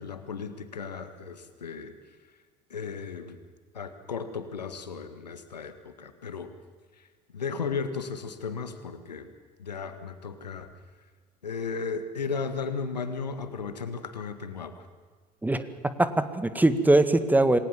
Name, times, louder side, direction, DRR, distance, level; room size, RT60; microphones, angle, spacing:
voice 1, 0.0-1.9 2.7-3.4 3.7-6.5 7.3-9.3 9.6-10.7 11.4-14.8, left 5 dB, 85° left, 10 dB, 1.8 m, -35 dB
voice 2, 16.0-17.6, right 2 dB, 10° right, 11 dB, 1.9 m, -21 dB
28.0 x 19.0 x 7.4 m, 1.5 s
figure-of-eight pair, 65°, 21 cm